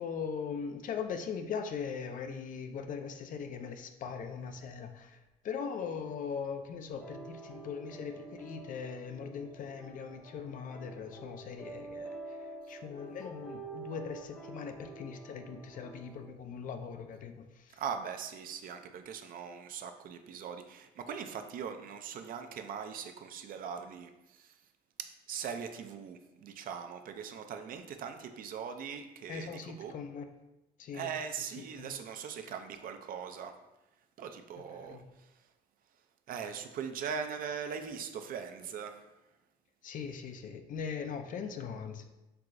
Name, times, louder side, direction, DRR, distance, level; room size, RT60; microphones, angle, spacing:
voice 1, 0.0-17.8 29.3-30.3 30.8-31.2 31.4-32.0 34.7-35.0 39.8-42.0, left 6 dB, 50° left, 7 dB, 0.4 m, -40 dB
sound 1, 6.9-16.3, right 3 dB, 5° left, 0.8 m, -48 dB
voice 2, 17.8-24.5 25.0-29.9 30.9-33.5 34.2-35.3 36.3-39.0, right 7 dB, 55° right, 7 dB, 0.5 m, -41 dB
4.6 x 3.6 x 2.5 m, 0.97 s
cardioid pair, 115°, 17 cm